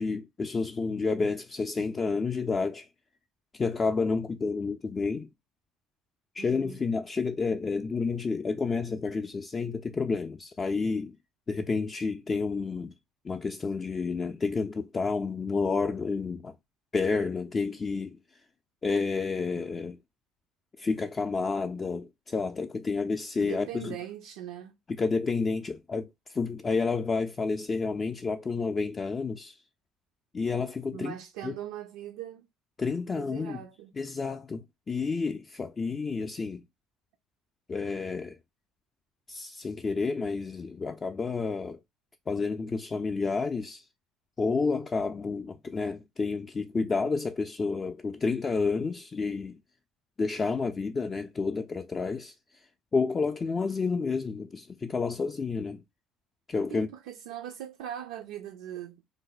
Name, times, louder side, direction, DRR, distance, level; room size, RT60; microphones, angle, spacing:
voice 1, 0.0-2.9 3.5-5.3 6.3-11.2 11.5-12.9 13.2-16.5 16.9-18.2 18.8-20.0 20.8-24.0 24.9-29.6 30.3-31.1 31.4-31.5 32.8-33.6 33.9-36.6 37.7-38.4 39.3-41.8 42.3-43.8 44.4-49.6 50.2-52.3 52.9-55.8 56.5-56.9, left 4 dB, 25° left, 0.3 m, -30 dB
voice 2, 6.4-6.8 23.4-24.8 30.9-32.5 33.1-33.9 56.7-59.0, right 11 dB, 90° right, 0.5 m, -40 dB
3.3 x 2.1 x 3.8 m
supercardioid pair, 105°, 0 cm